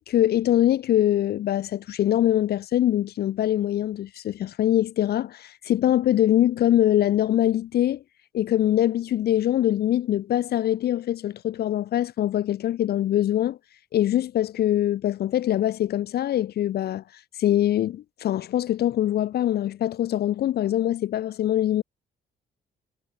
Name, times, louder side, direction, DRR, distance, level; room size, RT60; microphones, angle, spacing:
voice 1, 0.0-8.0 8.3-13.6 13.9-17.0 17.4-21.8, left 12 dB, 55° left, 0.4 m, -23 dB
cardioid pair, 90°, 20 cm